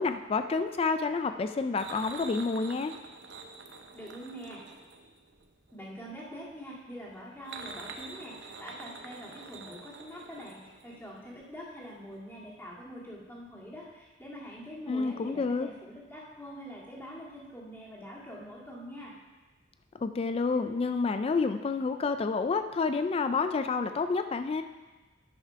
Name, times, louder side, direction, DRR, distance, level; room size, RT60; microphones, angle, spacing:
voice 1, 0.0-2.9 14.9-15.7 20.0-24.6, left 4 dB, 30° left, 9 dB, 0.3 m, -29 dB
sound 1, 1.7-5.9 7.1-11.4 11.7-11.8 12.1-12.2, right 4 dB, 65° right, 0.8 m, -46 dB
voice 2, 3.9-4.6 5.7-19.1, equal, 10° left, -5 dB, 2.0 m, -44 dB
9.2 x 5.8 x 5.6 m, 1.2 s
head